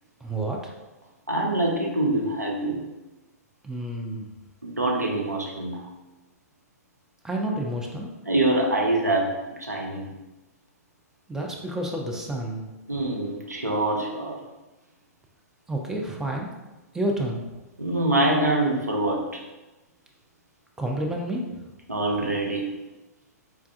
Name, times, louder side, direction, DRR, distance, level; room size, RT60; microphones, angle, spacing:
voice 1, 0.2-0.7 3.6-4.3 7.2-8.1 11.3-12.7 15.7-16.5 16.9-17.4 20.8-21.4, right 1 dB, 5° right, 0 dB, 0.3 m, -29 dB
voice 2, 1.3-2.8 4.6-5.8 8.3-10.1 12.9-14.4 17.8-19.4 21.9-22.7, right 2 dB, 85° right, 0 dB, 0.6 m, -25 dB
3.4 x 2.3 x 2.3 m, 1.1 s
figure-of-eight pair, 110°, 9 cm